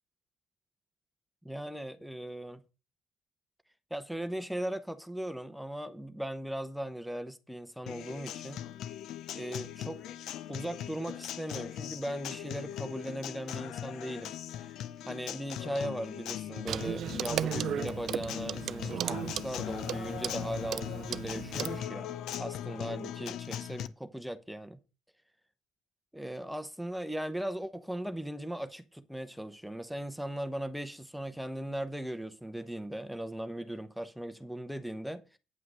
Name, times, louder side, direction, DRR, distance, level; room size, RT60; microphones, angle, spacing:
voice 1, 1.4-2.6 3.9-8.6 9.3-10.0 10.5-14.7 15.1-22.1 22.4-24.8 26.1-35.4, right 1 dB, ahead, 0.9 m, -38 dB
Acoustic guitar, 7.9-23.9, left 11 dB, 75° left, 0.7 m, -40 dB
Clock, 16.7-21.8, right 10 dB, 60° right, 0.4 m, -36 dB
9.6 x 5.7 x 6.5 m
cardioid pair, 130°, 0 cm